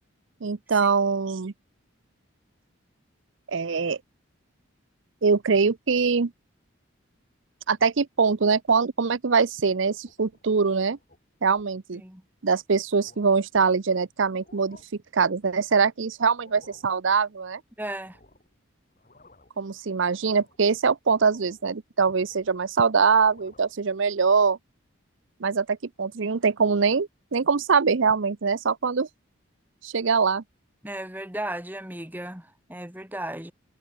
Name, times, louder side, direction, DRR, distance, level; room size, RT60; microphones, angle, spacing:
voice 1, 0.4-1.5 3.5-4.0 5.2-6.3 7.7-11.0 11.4-12.0 12.4-14.8 15.1-17.6 19.6-24.6 25.4-29.1 29.8-30.4, right 5 dB, 65° right, 0.6 m, -23 dB
sound 1, 9.9-10.5 11.0-11.2 11.6-11.8 12.4-12.5 12.8-13.5 14.3-14.8 16.2-16.9 18.0-18.5 18.9-19.6 20.1-20.6 21.3-21.7 22.1-22.7 23.1-23.8, left 2 dB, 40° left, 6.6 m, -56 dB
voice 2, 17.8-18.2 30.8-33.5, right 1 dB, 10° right, 3.3 m, -35 dB
head